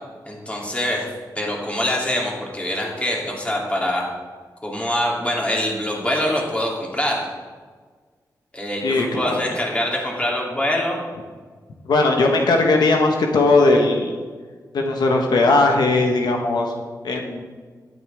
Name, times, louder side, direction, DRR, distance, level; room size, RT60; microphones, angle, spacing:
voice 1, 0.3-1.1 1.3-4.0 4.6-7.3 8.5-11.0, left 1 dB, 20° left, -2 dB, 2.9 m, -24 dB
voice 2, 8.8-9.3 11.8-14.1 14.7-16.7 17.0-17.4, left 2 dB, 85° left, 2 dB, 1.2 m, -18 dB
12.0 x 9.7 x 3.5 m, 1.5 s
cardioid pair, 80°, 7 cm